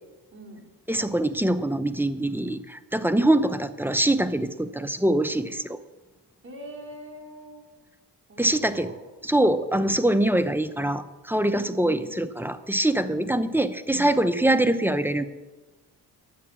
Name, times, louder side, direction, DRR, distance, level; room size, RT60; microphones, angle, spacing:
voice 1, 0.3-0.7 6.4-7.6 8.3-9.0 11.5-12.2 13.2-13.4, equal, 30° right, -3 dB, 4.5 m, -43 dB
voice 2, 0.9-5.8 8.4-8.9 9.3-15.2, right 1 dB, 5° right, 10 dB, 0.7 m, -24 dB
11.0 x 8.6 x 7.3 m, 1.2 s
cardioid pair, 90°, 42 cm